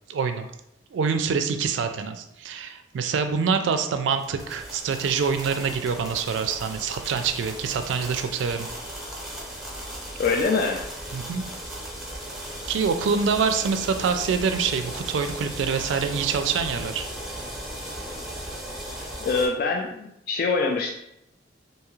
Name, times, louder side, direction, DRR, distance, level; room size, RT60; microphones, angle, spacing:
voice 1, 0.1-0.5 0.9-8.7 11.1-11.4 12.7-17.1, right 6 dB, 70° right, 8 dB, 0.3 m, -25 dB
sound 1, 4.1-19.5, right 1 dB, ahead, 0.7 m, -37 dB
voice 2, 10.2-10.8 19.2-20.9, left 4 dB, 55° left, 1 dB, 0.3 m, -24 dB
2.7 x 2.3 x 3.0 m, 0.79 s
head